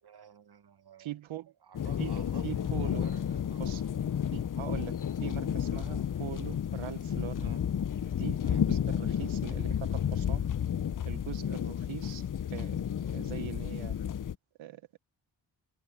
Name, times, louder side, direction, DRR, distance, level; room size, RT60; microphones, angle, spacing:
voice 1, 0.0-1.1 1.6-3.7 7.4-7.6 8.4-8.6, right 8 dB, 55° right, 1.3 m, -53 dB
voice 2, 1.0-1.5 2.0-2.1 2.4-3.0 3.6-3.8 4.3-7.5 8.1-10.5 11.0-14.0 14.6-15.0, right 12 dB, 85° right, 0.9 m, -42 dB
sound 1, 1.7-14.3, left 9 dB, 45° left, 0.6 m, -32 dB
cardioid pair, 60°, 46 cm